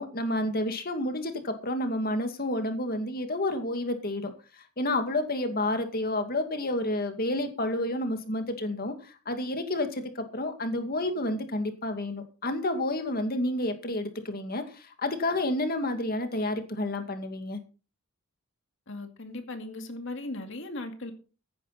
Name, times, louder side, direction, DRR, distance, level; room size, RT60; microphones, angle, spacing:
voice 1, 0.0-4.3 4.8-17.6, left 1 dB, 45° left, 2.3 m, -30 dB
voice 2, 18.9-21.1, left 2 dB, 60° left, 2.3 m, -38 dB
15.5 x 10.5 x 4.2 m
head